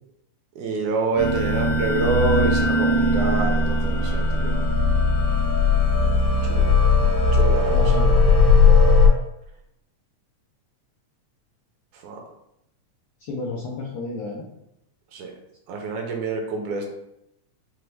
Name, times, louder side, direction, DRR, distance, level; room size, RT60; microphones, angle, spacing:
voice 1, 0.6-4.6 6.4-6.7 7.3-8.1 11.9-12.2 15.1-15.3 15.7-16.9, right 3 dB, 80° right, 2 dB, 2.1 m, -27 dB
sound 1, 1.2-9.1, left 3 dB, 65° left, 1.5 m, -18 dB
voice 2, 7.7-8.1 13.3-14.4, left 3 dB, 85° left, -3 dB, 1.2 m, -31 dB
5.8 x 2.1 x 3.3 m, 0.82 s
omnidirectional pair, 3.5 m